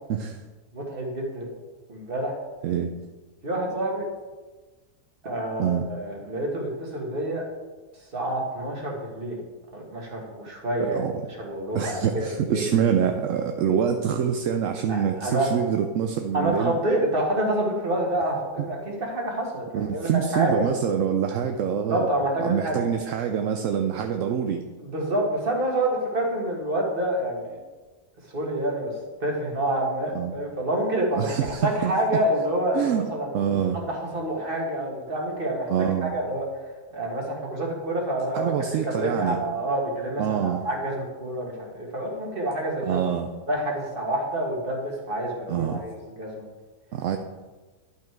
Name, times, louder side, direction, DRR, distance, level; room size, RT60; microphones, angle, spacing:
voice 1, 0.1-0.4 2.6-2.9 5.6-5.9 10.8-11.1 11.7-16.8 19.7-22.1 22.4-24.6 30.1-30.3 31.1-31.9 32.7-33.1 33.3-33.8 35.7-36.1 38.3-39.4 40.2-40.6 42.8-43.3 45.5-45.8 46.9-47.2, right 8 dB, 65° right, 5 dB, 0.8 m, -25 dB
voice 2, 0.7-1.5 1.9-2.3 3.4-4.1 5.2-7.5 8.1-9.4 9.7-11.0 11.4-12.7 14.9-15.5 16.3-20.7 21.9-22.8 24.8-27.6 28.3-28.9 29.2-33.3 33.7-35.7 36.0-36.4 36.9-38.5 38.8-43.0 43.5-46.5, right 1 dB, 35° right, 0 dB, 1.8 m, -27 dB
11.0 x 5.7 x 4.6 m, 1.3 s
omnidirectional pair, 1.6 m